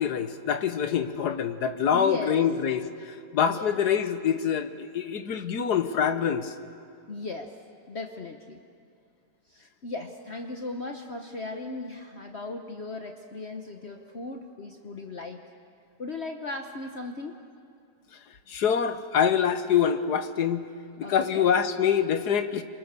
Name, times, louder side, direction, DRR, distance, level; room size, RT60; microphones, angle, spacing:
voice 1, 0.0-6.5 18.5-20.7 21.0-22.6, left 8 dB, 75° left, 10 dB, 1.7 m, -25 dB
voice 2, 1.9-2.4 3.4-3.8 7.1-7.5 7.9-8.6 9.5-15.4 16.0-17.4 21.0-21.5, left 3 dB, 45° left, 4 dB, 1.2 m, -37 dB
28.5 x 24.5 x 6.8 m, 2.4 s
omnidirectional pair, 1.7 m